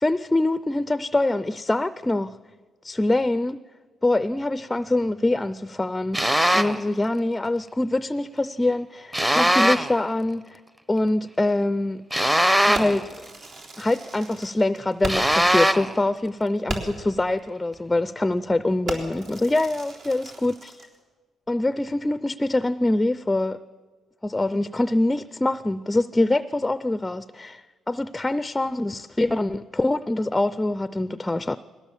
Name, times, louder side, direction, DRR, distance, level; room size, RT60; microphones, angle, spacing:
voice 1, 0.0-2.4 2.8-3.6 4.0-6.2 6.5-10.6 10.9-12.0 12.7-13.1 13.8-20.7 21.5-23.6 24.2-31.6, left 2 dB, 15° left, 14 dB, 0.5 m, -24 dB
sound 1, 6.1-6.8 9.1-10.0 12.1-13.1 15.1-16.0, equal, 10° right, 0.9 m, -20 dB
Fireworks, 12.7-15.5 15.8-15.9 16.3-16.4 16.7-17.1 17.7-17.9 18.3-18.5 18.9-21.0, right 3 dB, 65° right, 3.7 m, -36 dB
21.0 x 17.0 x 7.3 m, 1.5 s
cardioid pair, 90°, 0 cm